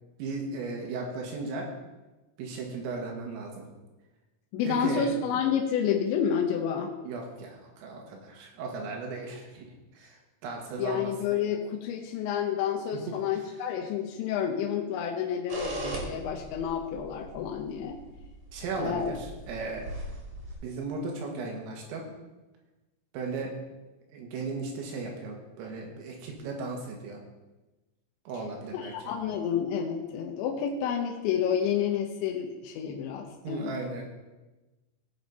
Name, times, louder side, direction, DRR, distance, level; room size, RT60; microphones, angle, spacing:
voice 1, 0.2-1.7 2.4-3.7 4.6-5.1 7.0-9.7 10.0-11.1 12.9-13.0 18.5-19.1 19.4-19.8 20.6-22.0 23.1-23.5 24.1-27.2 28.3-28.9 33.4-34.0, right 3 dB, 85° right, 0 dB, 4.3 m, -36 dB
voice 2, 4.5-6.9 10.8-18.0 18.8-19.1 28.7-33.7, left 8 dB, 75° left, 0 dB, 2.8 m, -29 dB
sound 1, 15.5-20.6, right 1 dB, 45° right, 2.5 m, -39 dB
17.0 x 6.5 x 4.2 m, 1.1 s
omnidirectional pair, 5.9 m